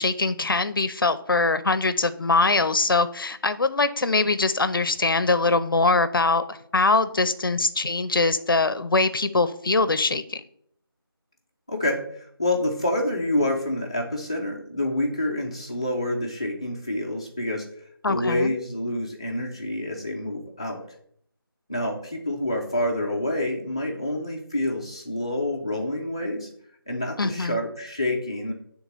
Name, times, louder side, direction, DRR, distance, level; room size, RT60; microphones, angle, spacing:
voice 1, 0.0-10.4 18.0-18.5 27.2-27.6, left 3 dB, 65° left, 13 dB, 0.5 m, -22 dB
voice 2, 11.7-17.7 18.1-20.8 21.7-26.5 26.9-28.5, left 1 dB, 15° left, -1 dB, 0.5 m, -27 dB
9.0 x 3.6 x 3.0 m, 0.66 s
figure-of-eight pair, 170°, 12 cm